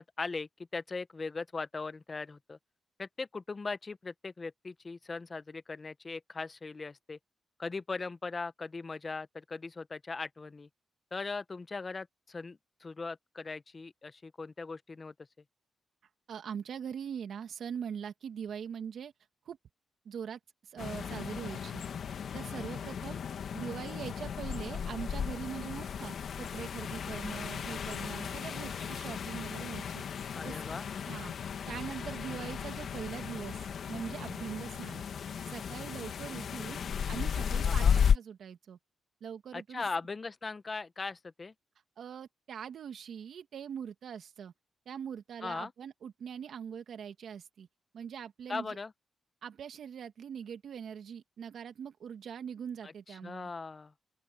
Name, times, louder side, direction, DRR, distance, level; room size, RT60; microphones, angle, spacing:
voice 1, 0.0-2.6 3.0-7.2 7.6-10.7 11.1-15.1 30.3-30.9 37.6-38.0 39.5-41.5 45.4-45.7 48.5-48.9 52.8-52.9 53.2-53.9, left 4 dB, 35° left, 0.9 m, -39 dB
voice 2, 16.3-19.1 19.5-19.6 20.0-23.2 23.5-30.6 31.1-31.3 31.7-35.0 35.5-38.8 39.2-39.9 42.0-44.5 44.9-47.7 47.9-48.8 49.4-53.5, right 8 dB, 75° right, 2.2 m, -42 dB
sound 1, 20.8-38.2, left 7 dB, 70° left, 2.0 m, -34 dB
open air
cardioid pair, 75°, 0 cm